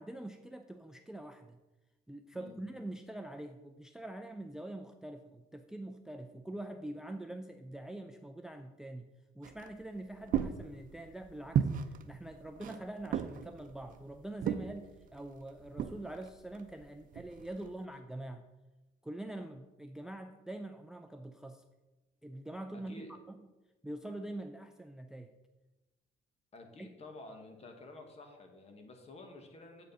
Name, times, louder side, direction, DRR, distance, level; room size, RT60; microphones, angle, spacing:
voice 1, 0.0-1.6 2.1-9.1 9.3-18.5 19.0-21.6 22.2-23.0 23.8-25.3 26.8-26.9, right 1 dB, 5° right, 7 dB, 0.4 m, -44 dB
sound 1, 9.4-17.8, right 8 dB, 55° right, 0.7 m, -37 dB
voice 2, 22.7-23.1 26.5-29.9, left 2 dB, 40° left, 5 dB, 1.6 m, -51 dB
7.8 x 6.7 x 5.5 m, 1.1 s
cardioid pair, 110°, 17 cm